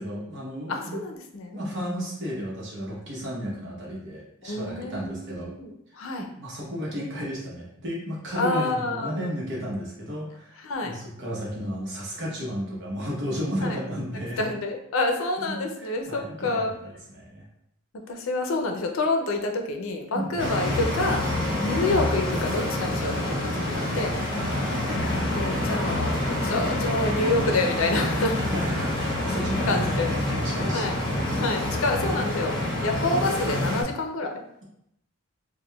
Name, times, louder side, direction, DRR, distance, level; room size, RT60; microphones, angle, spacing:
voice 1, 0.0-1.0 1.5-5.5 5.9-14.5 15.4-17.5 20.1-20.3 21.4-21.6 24.3-24.5 28.5-31.4, equal, 60° right, -4 dB, 0.9 m, -33 dB
voice 2, 0.7-1.6 4.4-6.3 8.4-9.1 10.6-11.0 13.6-13.8 14.4-16.7 18.1-21.2 21.6-24.2 25.3-28.4 29.7-30.1 30.7-31.0 31.4-34.3, left 2 dB, 70° left, 4 dB, 0.5 m, -28 dB
sound 1, 20.4-33.8, left 1 dB, 25° left, 0.8 m, -27 dB
4.7 x 2.2 x 2.2 m, 0.76 s
head